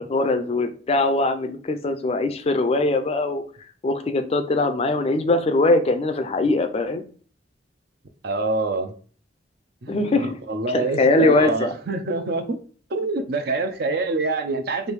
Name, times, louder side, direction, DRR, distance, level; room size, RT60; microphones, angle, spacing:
voice 1, 0.0-3.4 3.8-7.0 9.9-10.3 10.7-11.7, left 2 dB, 35° left, 8 dB, 0.4 m, -21 dB
voice 2, 8.2-8.9 9.8-12.6 12.9-14.9, right 3 dB, 55° right, 7 dB, 0.5 m, -26 dB
3.3 x 2.6 x 4.6 m, 0.42 s
head